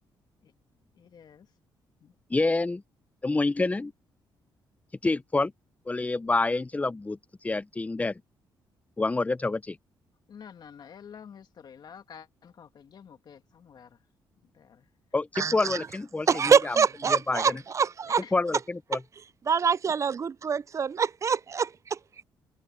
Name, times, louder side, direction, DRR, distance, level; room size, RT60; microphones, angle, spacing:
voice 1, 0.9-1.5 2.0-2.1 10.3-14.0 14.5-14.9 18.2-18.3, left 7 dB, 55° left, 2.4 m, -49 dB
voice 2, 2.3-2.8 3.2-3.9 5.0-5.5 5.9-7.2 7.4-8.2 9.0-9.8 15.1-16.8 17.1-17.6 18.3-19.0, left 3 dB, 15° left, 0.6 m, -27 dB
voice 3, 15.4-15.8 16.3-18.2 19.5-22.0, right 6 dB, 35° right, 0.4 m, -25 dB
cardioid pair, 95°, 9 cm